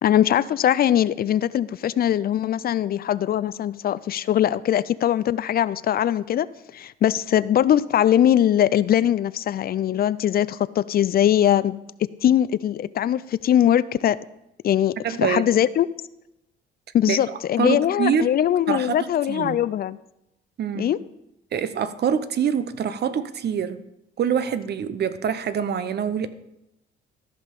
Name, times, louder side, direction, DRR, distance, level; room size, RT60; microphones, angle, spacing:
voice 1, 0.0-14.2 14.6-15.9 16.9-20.0 20.8-21.0, left 10 dB, 50° left, 18 dB, 0.4 m, -21 dB
voice 2, 15.0-15.4 17.1-17.2 17.6-18.3 18.7-19.0 19.3-19.6 20.6-20.9 21.5-23.8 24.2-26.3, right 7 dB, 55° right, 13 dB, 0.7 m, -25 dB
13.5 x 5.6 x 5.2 m, 0.88 s
cardioid pair, 90°, 20 cm